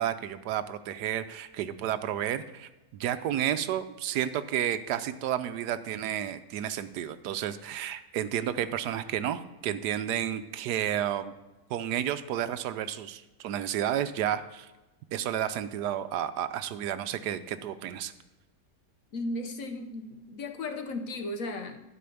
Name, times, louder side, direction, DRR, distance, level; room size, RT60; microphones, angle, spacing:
voice 1, 0.0-11.3 11.7-14.7 15.1-18.1, right 10 dB, 75° right, 11 dB, 1.1 m, -31 dB
voice 2, 19.1-21.8, left 2 dB, 60° left, 5 dB, 1.1 m, -35 dB
12.0 x 5.1 x 6.9 m, 1.1 s
omnidirectional pair, 1.8 m